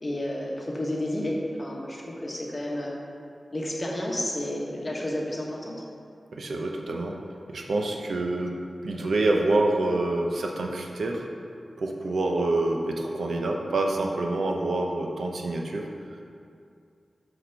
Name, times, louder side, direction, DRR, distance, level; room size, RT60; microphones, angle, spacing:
voice 1, 0.0-3.0 3.5-5.7, left 1 dB, 30° left, -3 dB, 1.3 m, -31 dB
voice 2, 6.3-7.2 7.5-8.5 8.8-11.3 11.8-15.9, right 2 dB, 80° right, 1 dB, 0.7 m, -27 dB
6.0 x 5.0 x 5.8 m, 2.4 s
wide cardioid pair, 90°, 0 cm